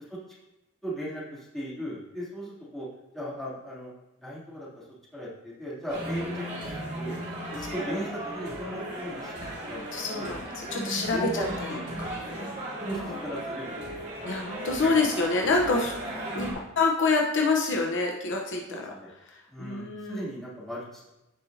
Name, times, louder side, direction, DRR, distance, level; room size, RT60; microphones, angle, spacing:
voice 1, 0.8-2.9 3.1-3.9 4.2-4.8 5.1-7.2 7.5-9.8 10.2-10.3 10.7-10.8 11.1-12.5 12.8-14.1 14.5-14.9 16.1-16.2 18.7-19.1 19.5-21.1, equal, ahead, -9 dB, 3.1 m, -37 dB
sound 1, 5.9-16.5, right 1 dB, 35° right, 3.1 m, -36 dB
voice 2, 9.9-10.4 10.7-11.4 12.0-13.2 14.2-15.9 16.3-18.9 19.6-20.2, left 3 dB, 60° left, 0 dB, 1.0 m, -27 dB
15.5 x 5.3 x 2.9 m, 0.94 s
head